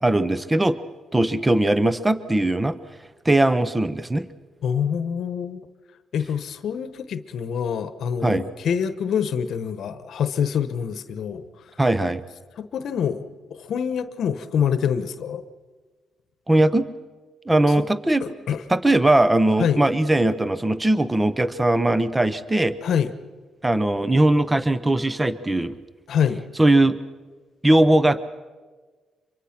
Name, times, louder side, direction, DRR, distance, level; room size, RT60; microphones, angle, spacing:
voice 1, 0.0-0.8 1.1-2.8 3.2-4.3 8.2-8.5 11.8-12.2 16.5-16.9 17.5-18.3 18.7-22.8 23.6-25.8 26.6-27.0 27.6-28.2, right 1 dB, 15° right, 15 dB, 0.9 m, -19 dB
voice 2, 4.6-5.6 6.1-11.7 12.6-15.4 17.8-17.9 18.2-18.6 19.6-19.8 22.8-23.1 26.1-26.4, left 7 dB, 65° left, 12 dB, 1.0 m, -26 dB
25.0 x 22.5 x 5.9 m, 1.4 s
cardioid pair, 90°, 0 cm